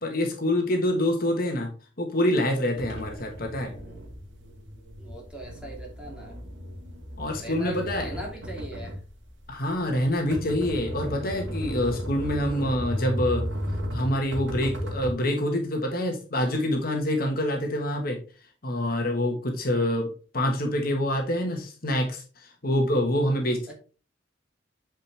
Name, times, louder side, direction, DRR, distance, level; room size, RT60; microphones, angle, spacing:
voice 1, 0.0-1.7 2.0-3.7 7.2-8.1 9.5-13.4 13.9-18.2 18.6-23.7, left 1 dB, 50° left, 3 dB, 1.5 m, -26 dB
sound 1, 2.8-15.2, equal, 75° right, 2.2 m, -35 dB
voice 2, 3.5-4.0 5.0-6.4 7.4-9.0 23.7-23.8, right 1 dB, 5° right, -2 dB, 2.6 m, -40 dB
8.7 x 5.2 x 3.4 m, 0.35 s
head